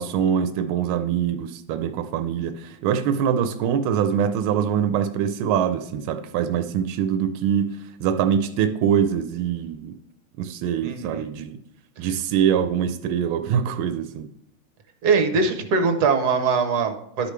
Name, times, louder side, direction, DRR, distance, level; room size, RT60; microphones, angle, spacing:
voice 1, 0.0-9.9 10.4-11.6 12.0-14.3, right 8 dB, 90° right, 8 dB, 1.4 m, -24 dB
voice 2, 10.8-11.3 12.0-12.1 15.0-17.3, right 4 dB, 60° right, 6 dB, 1.3 m, -22 dB
12.0 x 5.0 x 3.2 m, 0.76 s
omnidirectional pair, 2.2 m